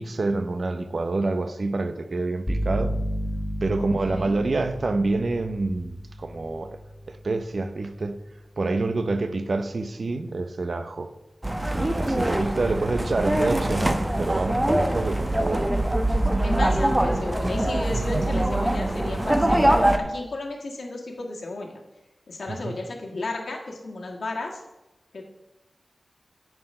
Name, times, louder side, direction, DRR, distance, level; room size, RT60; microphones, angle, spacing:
voice 1, 0.0-2.9 3.6-6.8 7.1-8.2 8.6-11.1 11.7-15.7 17.9-18.3 22.5-22.8, right 3 dB, 65° right, 0.7 m, -27 dB
sound 1, 2.5-10.2, equal, 25° left, 1.4 m, -34 dB
voice 2, 3.8-4.4 16.4-21.8 22.3-24.6 25.1-25.2, left 2 dB, 85° left, 1.5 m, -34 dB
sound 2, 11.4-20.0, right 1 dB, 15° right, 1.0 m, -23 dB
9.3 x 4.9 x 6.5 m
wide cardioid pair, 60°, 0 cm